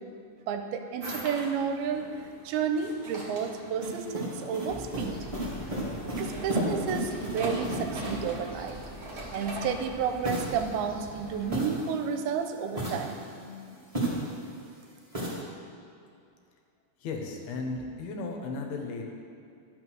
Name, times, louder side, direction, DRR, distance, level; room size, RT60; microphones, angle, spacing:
voice 1, 0.5-2.1 2.5-5.2 6.1-8.8 9.3-13.2, right 6 dB, 85° right, 7 dB, 2.5 m, -31 dB
sound 1, 1.0-10.4, right 1 dB, 60° right, 0.9 m, -42 dB
sound 2, 3.8-8.4 10.2-12.2 12.7-14.5 15.1-15.4, right 1 dB, 25° right, 0.8 m, -34 dB
sound 3, 4.7-11.5, equal, 20° left, 0.9 m, -45 dB
voice 2, 17.0-19.0, left 3 dB, 75° left, 2 dB, 2.8 m, -35 dB
11.5 x 5.9 x 6.3 m, 2.4 s
omnidirectional pair, 4.5 m